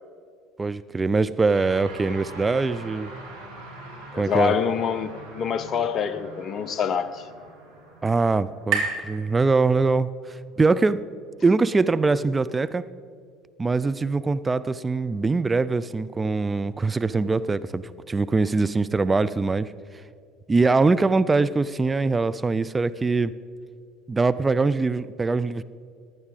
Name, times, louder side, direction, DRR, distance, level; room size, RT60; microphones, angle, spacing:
voice 1, 0.6-3.1 4.2-4.5 8.0-11.0 11.4-12.9 13.6-19.7 20.5-23.3 24.1-25.6, right 3 dB, 20° right, 0.4 m, -23 dB
sound 1, 1.5-11.0, right 2 dB, 75° right, 2.2 m, -44 dB
voice 2, 4.1-7.3, left 7 dB, 40° left, 0.7 m, -26 dB
sound 2, 6.3-10.1, right 6 dB, 50° right, 2.6 m, -34 dB
15.5 x 10.5 x 4.1 m
figure-of-eight pair, 65°, 0 cm